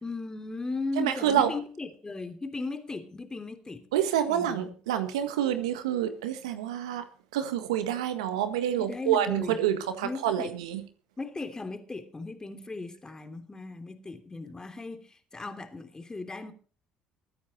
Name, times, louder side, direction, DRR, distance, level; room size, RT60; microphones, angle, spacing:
voice 1, 0.0-3.9 4.3-4.7 8.8-9.6 10.0-10.6 11.2-16.5, left 3 dB, 20° left, 3.1 m, -37 dB
voice 2, 1.0-1.5 3.9-7.0 7.3-10.8, right 10 dB, 85° right, 1.6 m, -27 dB
21.5 x 9.4 x 4.3 m
hypercardioid pair, 65°, 3 cm